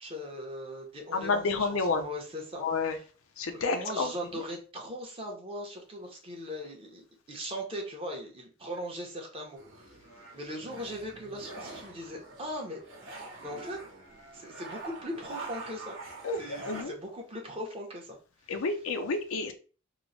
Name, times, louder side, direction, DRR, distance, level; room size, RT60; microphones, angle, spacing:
voice 1, 0.0-2.6 3.5-7.0 7.3-10.0 10.3-12.8 13.4-13.8 14.3-16.0 16.4-18.2, equal, 25° right, 0 dB, 0.7 m, -39 dB
voice 2, 1.1-2.1 2.6-3.0 3.4-4.1 16.2-16.9 18.5-19.5, left 4 dB, 65° left, 7 dB, 0.5 m, -30 dB
sound 1, 9.6-16.8, right 2 dB, 55° right, 1.0 m, -45 dB
3.0 x 2.1 x 3.9 m, 0.37 s
head